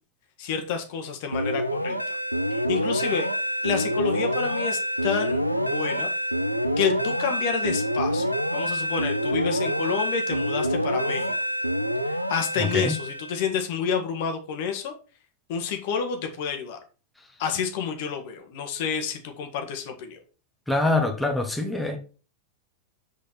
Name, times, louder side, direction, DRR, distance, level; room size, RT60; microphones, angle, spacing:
voice 1, 0.4-2.0 2.5-3.3 3.6-6.1 6.8-11.3 12.0-14.9 15.5-16.8 17.4-20.2, left 6 dB, 50° left, 1.7 m, -29 dB
sound 1, 1.3-13.4, equal, 90° right, 0.7 m, -27 dB
voice 2, 20.7-22.0, left 2 dB, 5° left, 1.5 m, -24 dB
6.7 x 5.1 x 6.0 m
figure-of-eight pair, 90°, 0 cm